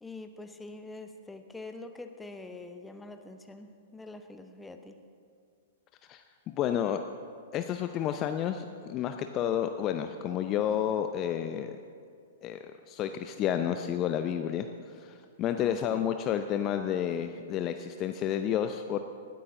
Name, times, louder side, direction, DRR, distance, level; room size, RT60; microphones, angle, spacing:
voice 1, 0.0-5.0 15.6-16.1, left 2 dB, 10° left, 7 dB, 1.0 m, -45 dB
voice 2, 6.1-7.0 7.5-11.8 12.4-14.7 14.9-19.0, left 9 dB, 30° left, 8 dB, 0.6 m, -30 dB
19.5 x 12.5 x 3.8 m, 2.2 s
figure-of-eight pair, 105°, 0 cm